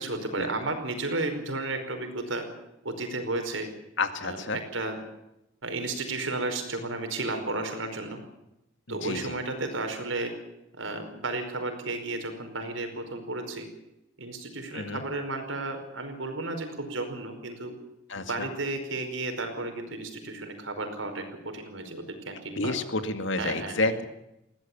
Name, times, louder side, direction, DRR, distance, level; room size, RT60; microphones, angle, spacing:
voice 1, 0.0-2.4 2.8-3.7 4.2-5.0 5.6-8.2 8.9-10.3 10.8-13.7 14.2-17.7 18.1-22.7 23.4-23.8, right 2 dB, 85° right, 5 dB, 5.1 m, -33 dB
voice 2, 4.0-4.6 8.9-9.4 14.7-15.1 18.1-18.5 22.6-24.1, left 2 dB, 70° left, 9 dB, 2.2 m, -30 dB
21.0 x 16.5 x 8.7 m, 0.88 s
head